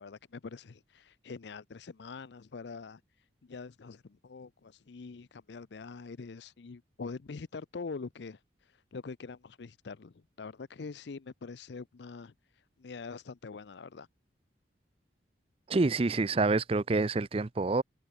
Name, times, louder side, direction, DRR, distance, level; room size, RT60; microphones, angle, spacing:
voice 1, 0.0-3.0 3.4-14.1, left 4 dB, 65° left, 0.5 m, -44 dB
voice 2, 15.7-17.8, right 3 dB, 30° right, 0.5 m, -27 dB
head